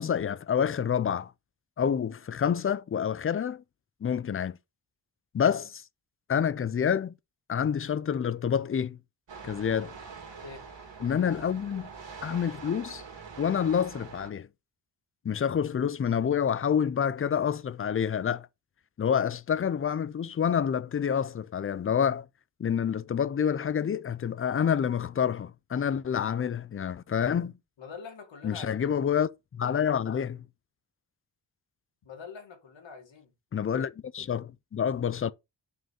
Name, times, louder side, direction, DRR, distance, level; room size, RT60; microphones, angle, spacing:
voice 1, 0.0-1.3 1.8-3.6 4.0-4.6 5.3-5.8 6.3-7.1 7.5-9.0 9.4-9.9 11.0-11.9 12.2-13.0 13.4-14.5 15.2-18.5 19.0-22.3 22.6-27.6 28.4-30.5 33.5-35.3, left 8 dB, 30° left, 0.4 m, -28 dB
sound 1, 9.3-14.3, right 5 dB, 75° right, 2.7 m, -44 dB
voice 2, 27.8-29.0 32.0-33.3, left 5 dB, 80° left, 2.2 m, -45 dB
6.3 x 4.7 x 4.8 m
wide cardioid pair, 165°, 45 cm